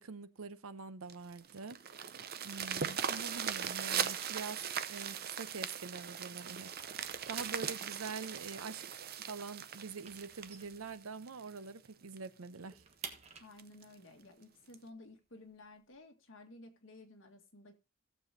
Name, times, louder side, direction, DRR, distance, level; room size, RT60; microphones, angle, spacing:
voice 1, 0.0-1.8 2.4-4.6 4.9-6.7 7.0-12.8, right 4 dB, 90° right, 0.8 m, -45 dB
sound 1, 1.1-11.6 12.2-12.3 12.7-12.8 13.1-13.2 13.6-13.8 14.7-14.8, right 8 dB, 45° right, 0.6 m, -39 dB
sound 2, 3.3-6.2 6.5-11.5 11.9-12.0 12.3-16.0, right 5 dB, 30° right, 1.3 m, -54 dB
voice 2, 13.4-17.8, left 2 dB, 60° left, 1.8 m, -55 dB
17.5 x 7.1 x 2.7 m
head